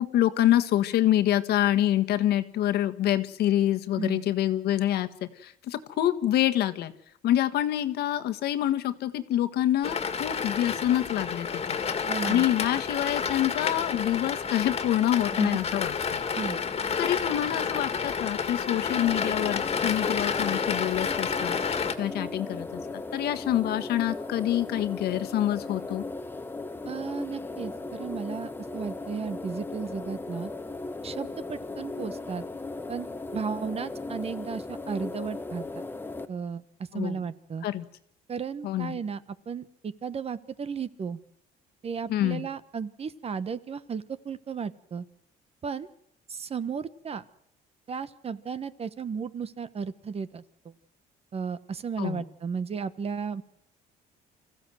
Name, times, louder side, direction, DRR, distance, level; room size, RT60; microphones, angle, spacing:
voice 1, 0.0-5.1 5.4-6.9 7.2-11.8 12.2-16.2 17.0-22.8 23.1-26.0 36.9-37.2 37.6-37.8 38.6-39.0 42.1-42.5 52.0-52.2, left 12 dB, 75° left, 9 dB, 1.6 m, -26 dB
sound 1, 9.8-21.9, left 6 dB, 35° left, 2.1 m, -30 dB
voice 2, 12.1-12.4 15.3-15.6 16.3-16.6 26.8-30.5 31.0-32.4 32.9-33.1 33.3-35.8 36.3-36.6 36.9-37.7 38.3-39.2 39.5-41.2 41.8-45.0 45.6-45.9 46.3-47.2 47.9-50.4 51.3-53.4, right 6 dB, 35° right, 14 dB, 1.2 m, -34 dB
sound 2, 18.9-36.3, left 2 dB, 10° left, 1.3 m, -37 dB
26.0 x 15.0 x 7.8 m, 0.73 s
cardioid pair, 110°, 17 cm